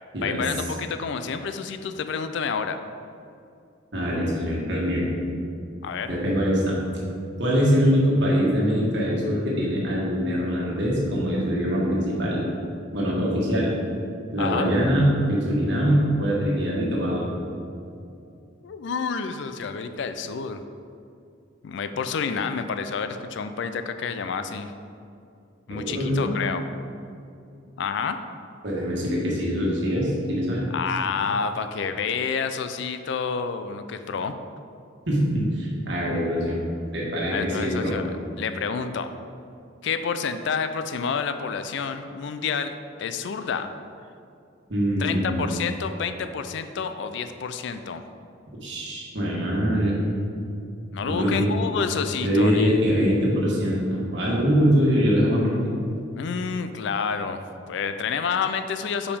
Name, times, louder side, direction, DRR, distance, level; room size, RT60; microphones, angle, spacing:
voice 1, 0.2-2.8 5.8-6.2 14.4-14.7 18.6-20.6 21.6-24.7 25.7-26.7 27.8-28.2 30.7-34.3 37.3-38.1 38.4-39.1 39.8-43.7 45.0-48.0 50.9-52.8 56.2-59.2, left 5 dB, 60° left, 9 dB, 0.3 m, -29 dB
voice 2, 3.9-5.1 6.1-6.7 7.4-12.5 12.9-13.7 14.3-17.2 25.7-26.3 28.6-30.7 35.1-36.6 36.9-38.0 44.7-45.4 48.6-50.0 51.0-51.5 52.1-55.6, equal, 60° right, -4 dB, 1.5 m, -23 dB
5.2 x 4.9 x 5.0 m, 2.5 s
head